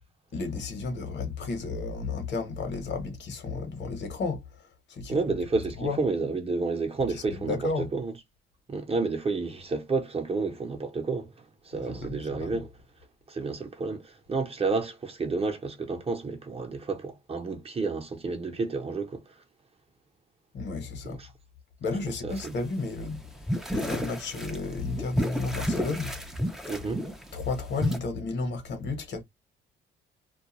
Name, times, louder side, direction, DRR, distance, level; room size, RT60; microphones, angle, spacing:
voice 1, 0.3-5.2 5.8-6.0 7.1-7.9 11.7-12.6 20.5-21.2 21.8-26.1 27.3-29.2, left 3 dB, 60° left, 1.1 m, -33 dB
voice 2, 5.1-8.1 8.7-11.3 11.6-12.7 13.3-19.2 21.0-21.3 22.2-22.5 26.7-27.0, right 4 dB, 30° right, 0.8 m, -30 dB
sound 1, 22.4-28.0, equal, ahead, 0.5 m, -32 dB
2.4 x 2.1 x 2.9 m
cardioid pair, 90°, 20 cm